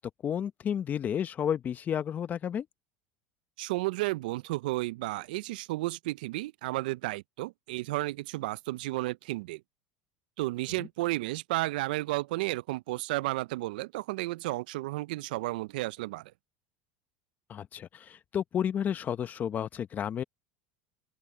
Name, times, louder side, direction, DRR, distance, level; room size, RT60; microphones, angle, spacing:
voice 1, 0.2-2.7 17.5-20.2, left 9 dB, 35° left, 0.9 m, -31 dB
voice 2, 3.6-9.6 10.4-16.3, right 19 dB, 80° right, 0.4 m, -32 dB
open air
supercardioid pair, 105°, 5 cm